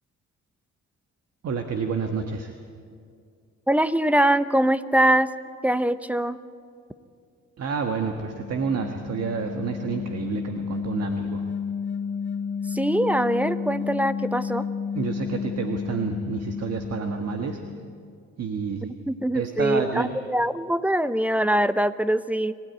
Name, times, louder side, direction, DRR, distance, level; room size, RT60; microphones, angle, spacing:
voice 1, 1.4-2.5 7.6-11.4 15.0-17.6 18.4-18.9 19.3-20.1, right 5 dB, 55° right, 5 dB, 1.6 m, -29 dB
voice 2, 3.7-5.3 5.6-6.4 12.7-14.7 19.1-22.5, right 1 dB, 5° right, 13 dB, 0.8 m, -23 dB
sound 1, 8.0-18.1, left 6 dB, 35° left, 2.2 m, -32 dB
24.5 x 16.0 x 9.4 m, 2.3 s
cardioid pair, 90°, 30 cm